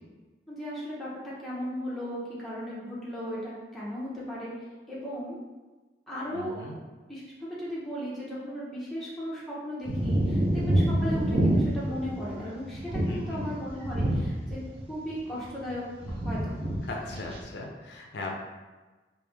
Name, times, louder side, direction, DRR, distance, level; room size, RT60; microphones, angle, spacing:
voice 1, 0.5-4.5 4.9-5.4 6.1-6.6 7.1-14.6 14.9-16.8, equal, ahead, -8 dB, 0.8 m, -36 dB
voice 2, 6.3-6.8 13.1-13.5 16.8-18.3, left 2 dB, 75° left, 0 dB, 0.5 m, -38 dB
sound 1, 9.8-14.8 15.1-15.7 16.0-16.8 17.1-17.4, right 1 dB, 30° right, 0.6 m, -27 dB
3.3 x 2.7 x 3.3 m, 1.2 s
head